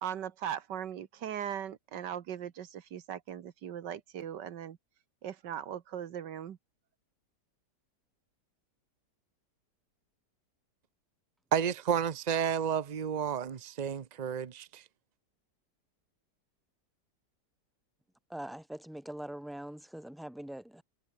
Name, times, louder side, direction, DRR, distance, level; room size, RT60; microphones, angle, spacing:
voice 1, 0.0-4.8 5.2-6.6, right 9 dB, 85° right, 1.8 m, -39 dB
voice 2, 11.5-14.8, right 8 dB, 60° right, 0.4 m, -31 dB
voice 3, 18.3-20.8, right 1 dB, ahead, 2.3 m, -42 dB
omnidirectional pair, 1.8 m